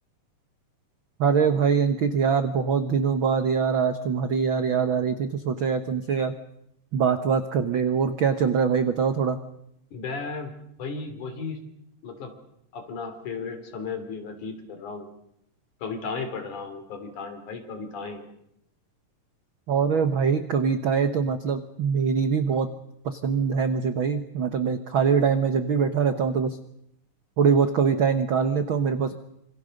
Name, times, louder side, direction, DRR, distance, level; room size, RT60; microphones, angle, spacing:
voice 1, 1.2-6.3 6.9-9.4 19.7-22.7 23.0-26.6 27.4-29.1, right 6 dB, 75° right, 9 dB, 1.1 m, -23 dB
voice 2, 9.9-10.5 10.8-11.6 12.0-12.3 12.7-15.1 15.8-18.2, left 4 dB, 60° left, 7 dB, 4.4 m, -35 dB
26.5 x 26.0 x 6.5 m, 0.78 s
omnidirectional pair, 4.0 m